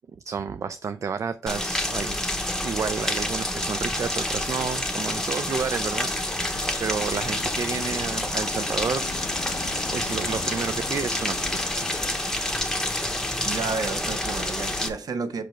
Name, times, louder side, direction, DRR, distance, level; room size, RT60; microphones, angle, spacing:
voice 1, 0.2-2.2 2.6-6.1 6.8-9.1 9.6-11.7, right 6 dB, 55° right, 0.4 m, -30 dB
Rain, 1.5-14.9, left 1 dB, 10° left, 0.8 m, -28 dB
sound 1, 4.5-12.5, left 7 dB, 80° left, 0.5 m, -40 dB
voice 2, 13.4-15.4, right 4 dB, 85° right, 0.9 m, -31 dB
5.9 x 5.1 x 4.5 m
wide cardioid pair, 170°, 6 cm